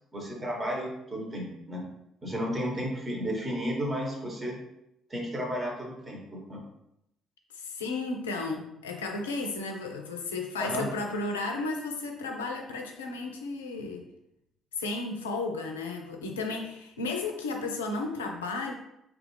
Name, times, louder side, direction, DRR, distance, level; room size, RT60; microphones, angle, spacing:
voice 1, 0.1-1.8 2.2-4.6 5.1-6.6 10.6-10.9, equal, 30° right, -2 dB, 1.2 m, -33 dB
voice 2, 7.5-14.0 14.8-18.7, left 3 dB, 90° left, 3 dB, 0.4 m, -33 dB
3.3 x 2.4 x 3.1 m, 0.81 s
hypercardioid pair, 50°, 0 cm